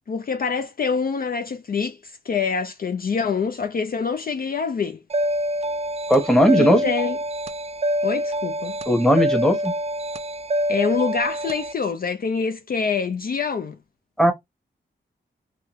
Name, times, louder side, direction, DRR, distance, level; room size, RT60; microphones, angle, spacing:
voice 1, 0.1-5.0 6.6-7.2 8.0-8.8 10.7-13.8, left 5 dB, 50° left, 0.4 m, -25 dB
sound 1, 5.1-11.7, equal, 30° right, 0.4 m, -26 dB
voice 2, 6.1-6.8 8.9-9.7 14.2-14.3, equal, 5° left, 0.9 m, -17 dB
3.2 x 2.2 x 2.9 m
cardioid pair, 70°, 20 cm